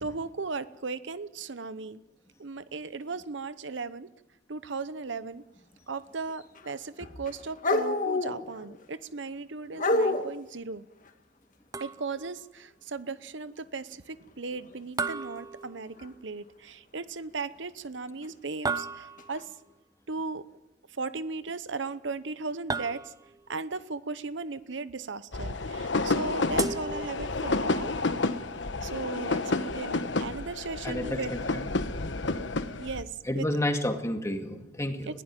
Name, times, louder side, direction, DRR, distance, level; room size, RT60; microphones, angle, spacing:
voice 1, 0.0-2.0 2.4-4.1 4.5-5.4 5.9-10.8 11.8-19.5 20.1-20.5 20.9-23.1 23.5-28.4 28.8-31.6 32.8-33.5 35.1-35.2, right 4 dB, 70° right, 14 dB, 0.9 m, -37 dB
sound 1, 6.3-6.7 7.0-8.8 9.7-10.3 14.5-14.8 16.0-16.1 18.2-18.3 19.2-19.4, left 2 dB, 45° left, 2.0 m, -28 dB
sound 2, 11.7-12.4 15.0-16.2 18.7-19.5 22.7-23.5 26.6-27.6, right 4 dB, 20° right, 0.7 m, -35 dB
sound 3, 25.3-33.0, left 3 dB, 70° left, 1.2 m, -30 dB
voice 2, 30.8-31.2 31.5-31.7 32.1-32.2 33.3-35.2, left 1 dB, 15° left, 5 dB, 2.2 m, -30 dB
21.0 x 15.5 x 9.1 m, 0.94 s
head